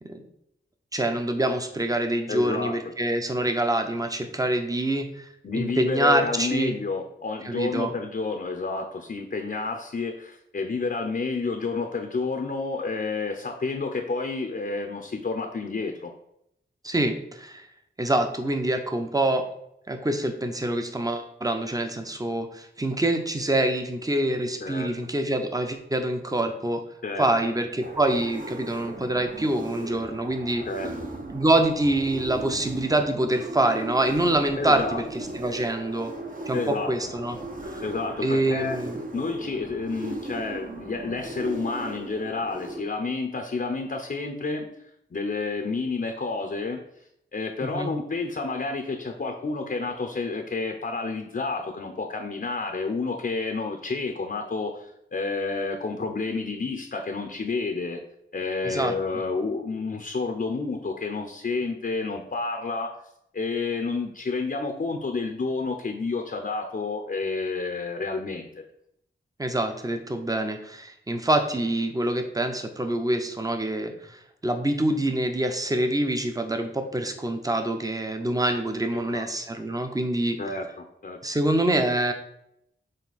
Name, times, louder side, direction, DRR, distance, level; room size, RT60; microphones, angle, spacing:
voice 1, 0.9-5.3 5.5-6.8 7.4-7.9 16.8-17.6 18.0-19.4 19.9-26.8 27.2-30.7 31.3-36.1 36.5-37.4 37.6-37.8 38.2-39.0 47.7-47.9 58.6-58.9 69.4-80.4 81.2-82.1, right 1 dB, 20° right, 6 dB, 0.8 m, -25 dB
voice 2, 2.3-2.7 5.4-16.1 24.6-24.9 27.0-27.3 30.7-30.9 34.6-35.0 36.5-36.9 37.8-38.8 39.1-44.7 45.1-47.0 47.3-58.0 58.3-62.9 63.3-68.6 78.9-79.3 80.4-81.2, left 3 dB, 50° left, 4 dB, 0.7 m, -30 dB
sound 1, 27.8-42.8, right 2 dB, 45° right, 1.0 m, -37 dB
6.6 x 3.9 x 4.1 m, 0.77 s
wide cardioid pair, 80°, 20 cm